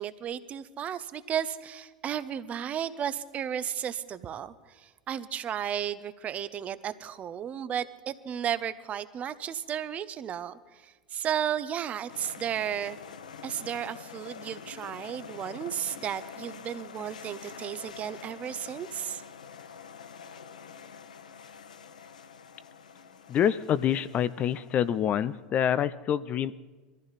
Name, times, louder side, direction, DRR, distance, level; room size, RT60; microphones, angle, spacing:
voice 1, 0.0-13.0 13.4-19.2, right 9 dB, 35° right, 13 dB, 0.8 m, -34 dB
sound 1, 12.1-25.2, left 6 dB, 85° left, 0.7 m, -46 dB
voice 2, 23.3-26.5, left 9 dB, 40° left, 16 dB, 0.5 m, -26 dB
21.5 x 14.5 x 4.1 m, 1.3 s
hypercardioid pair, 85°, 4 cm